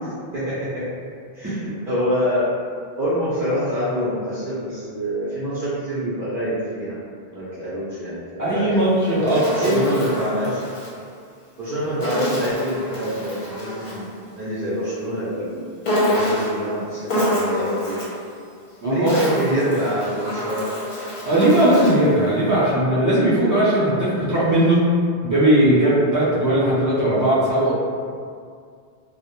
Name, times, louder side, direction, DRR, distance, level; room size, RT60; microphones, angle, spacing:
voice 1, 0.0-0.8 1.3-2.4 3.0-7.0 7.3-8.9 9.5-10.6 11.6-14.1 14.3-15.6 15.9-18.1 18.8-20.6, equal, 60° right, -11 dB, 0.7 m, -26 dB
voice 2, 8.4-9.8 18.8-19.1 21.2-24.8 25.2-27.7, right 1 dB, 25° right, -11 dB, 0.4 m, -18 dB
Insect, 8.8-10.9 12.0-14.1 15.8-16.6 17.1-18.2 18.8-22.1, equal, 55° left, 0.7 m, -26 dB
2.1 x 2.1 x 2.9 m, 2.2 s
omnidirectional pair, 1.0 m